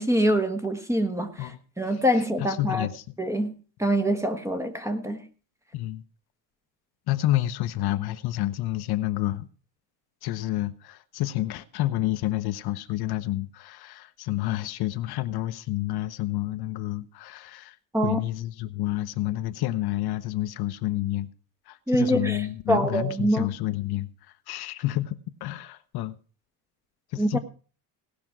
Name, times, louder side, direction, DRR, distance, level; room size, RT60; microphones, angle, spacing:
voice 1, 0.0-1.5 1.8-2.9 3.2-3.5 3.8-5.2 17.9-18.2 21.9-23.5 27.2-27.4, equal, 5° right, 1.3 m, -25 dB
voice 2, 2.4-3.2 5.7-6.0 7.1-9.5 10.2-17.8 18.0-21.3 21.7-26.2 27.1-27.4, left 15 dB, 60° left, 0.9 m, -29 dB
18.0 x 6.2 x 6.0 m
cardioid pair, 140°, 43 cm